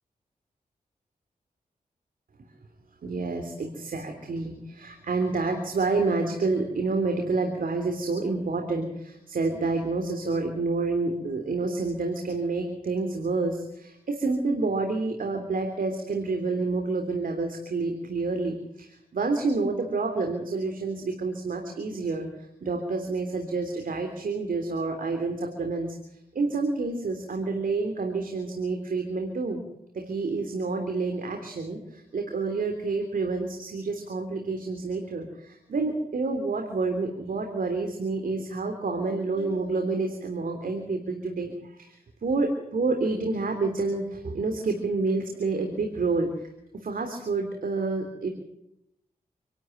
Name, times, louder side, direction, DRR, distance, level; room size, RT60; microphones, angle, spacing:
voice 1, 3.0-22.3 22.6-26.0 26.3-29.6 29.9-46.5 46.7-48.3, right 3 dB, 70° right, 4 dB, 3.4 m, -28 dB
27.5 x 12.5 x 9.2 m, 0.81 s
cardioid pair, 60°, 15 cm